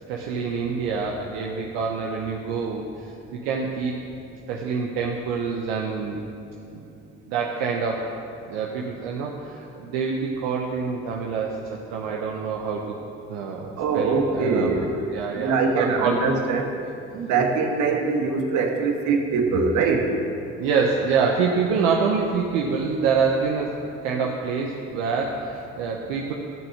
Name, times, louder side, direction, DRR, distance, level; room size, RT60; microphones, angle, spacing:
voice 1, 0.1-4.0 4.5-6.2 6.7-6.8 7.3-8.1 8.5-12.9 13.3-16.3 20.6-26.3, right 5 dB, 80° right, -1 dB, 1.0 m, -26 dB
voice 2, 13.8-14.8 15.3-16.7 17.1-20.1, right 4 dB, 65° right, 3 dB, 1.6 m, -23 dB
12.0 x 6.3 x 6.5 m, 2.6 s
hypercardioid pair, 65°, 32 cm